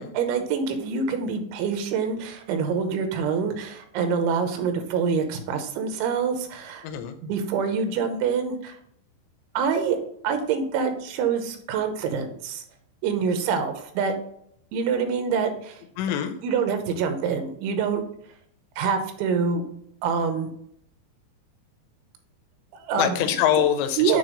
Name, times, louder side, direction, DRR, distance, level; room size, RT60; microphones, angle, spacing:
voice 1, 0.0-6.9 7.2-8.8 9.5-10.0 10.2-12.6 13.0-14.2 14.7-15.8 16.4-18.0 18.8-19.7 20.0-20.5 22.7-23.2 24.0-24.2, right 6 dB, 85° right, 7 dB, 3.3 m, -26 dB
voice 2, 6.8-7.2 16.0-16.3 23.0-24.2, left 10 dB, 80° left, 8 dB, 2.8 m, -24 dB
8.7 x 3.5 x 3.9 m, 0.68 s
omnidirectional pair, 5.3 m